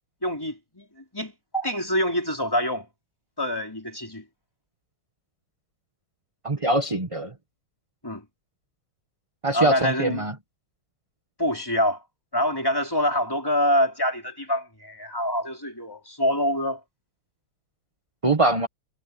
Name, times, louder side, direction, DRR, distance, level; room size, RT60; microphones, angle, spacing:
voice 1, 0.2-0.8 1.1-2.9 3.4-4.2 8.0-8.2 9.5-10.3 11.4-12.0 12.3-16.8, equal, 10° left, 4.7 m, -25 dB
voice 2, 6.4-7.3 9.4-10.3 18.2-18.7, right 2 dB, 15° right, 1.5 m, -23 dB
omnidirectional pair, 2.3 m